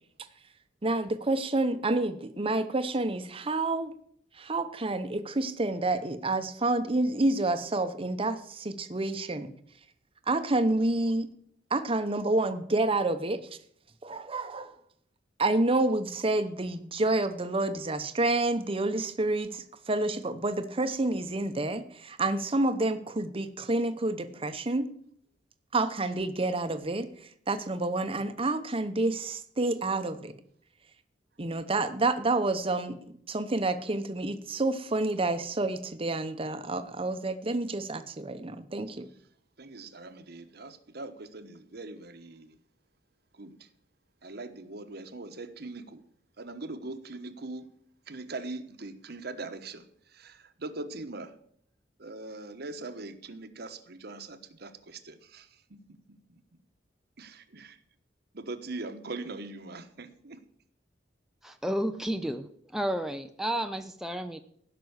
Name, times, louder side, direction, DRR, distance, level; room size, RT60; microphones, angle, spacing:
voice 1, 0.8-3.9 4.4-9.5 10.3-11.3 11.7-13.4 14.0-14.8 15.4-24.9 25.7-27.1 27.5-30.3 31.4-33.0 33.3-39.1, right 2 dB, 30° right, 9 dB, 0.9 m, -29 dB
voice 2, 39.6-42.5 43.4-43.6 44.2-46.0 46.4-47.7 48.1-49.8 50.1-51.3 52.0-55.8 56.3-56.4 57.2-57.8 58.3-60.4, right 2 dB, 60° right, 9 dB, 1.1 m, -41 dB
voice 3, 61.4-64.4, right 1 dB, ahead, 6 dB, 0.5 m, -32 dB
15.5 x 6.1 x 8.0 m, 0.66 s
head